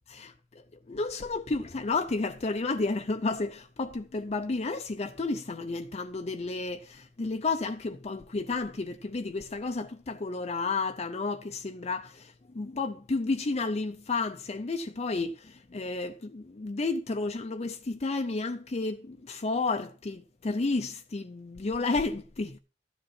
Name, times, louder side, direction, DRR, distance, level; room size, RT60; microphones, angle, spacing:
voice 1, 0.1-22.6, left 3 dB, 35° left, 0.5 m, -32 dB
12.5 x 7.8 x 4.2 m
head